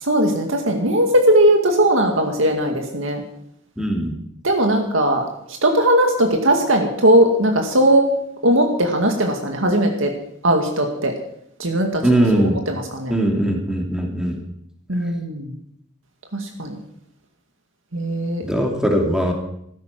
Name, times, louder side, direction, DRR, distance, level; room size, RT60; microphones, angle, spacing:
voice 1, 0.0-3.2 4.4-5.2 5.6-8.1 8.4-10.1 10.4-11.1 11.6-13.1 14.9-15.5 16.3-16.8 17.9-18.4, right 1 dB, 80° right, 3 dB, 2.1 m, -18 dB
voice 2, 3.8-4.2 12.0-12.6 13.1-14.4 18.4-19.3, right 1 dB, 5° right, 1 dB, 2.7 m, -20 dB
15.5 x 14.0 x 6.1 m, 0.74 s
head